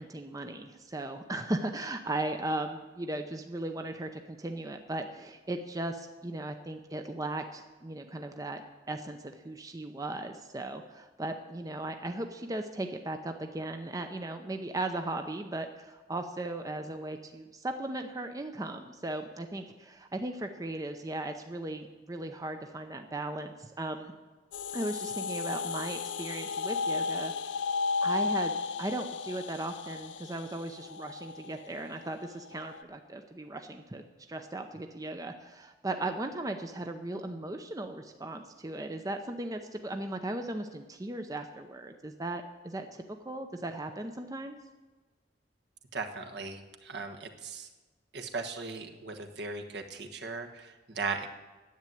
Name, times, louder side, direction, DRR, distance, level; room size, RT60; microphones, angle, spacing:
voice 1, 0.0-8.6 8.9-24.1 24.7-27.3 28.0-34.0 34.3-44.6, right 2 dB, 20° right, 6 dB, 0.6 m, -37 dB
sound 1, 24.5-32.8, left 4 dB, 90° left, 0.5 m, -34 dB
voice 2, 45.9-47.7 48.1-51.3, right 4 dB, 65° right, 4 dB, 1.3 m, -38 dB
10.5 x 8.1 x 9.2 m, 1.3 s
head